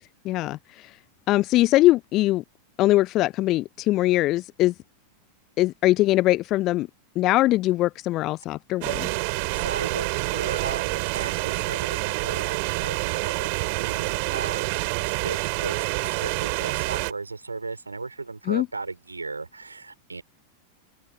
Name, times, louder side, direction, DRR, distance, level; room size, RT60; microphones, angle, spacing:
voice 1, 0.2-1.0 1.3-2.4 2.8-4.7 5.6-6.9 7.2-9.1 18.5-18.7, left 17 dB, 35° left, 0.4 m, -22 dB
sound 1, 8.8-17.1, right 32 dB, 45° right, 5.1 m, -27 dB
voice 2, 9.5-14.8 15.2-20.2, right 3 dB, 80° right, 6.1 m, -36 dB
open air
figure-of-eight pair, 90°, 0 cm